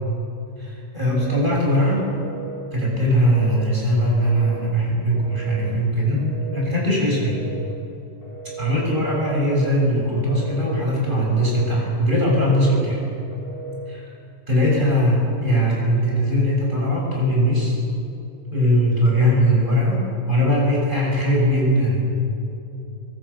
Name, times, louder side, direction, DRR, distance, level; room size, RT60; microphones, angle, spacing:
voice 1, 0.6-2.1 2.7-7.4 8.6-13.0 13.9-14.0 14.5-17.8 18.5-22.0, equal, 15° right, -3 dB, 7.4 m, -20 dB
Telephone, 1.1-1.6 2.1-2.7 3.1-3.7 4.1-4.7 5.2-5.7 6.2-6.7 7.2-7.8 8.2-8.8 9.2-9.8 10.3-10.8 11.2-11.8 12.3-12.9 13.3-13.9, right 4 dB, 60° left, 5.0 m, -37 dB
25.5 x 23.0 x 7.2 m, 2.9 s
omnidirectional pair, 3.4 m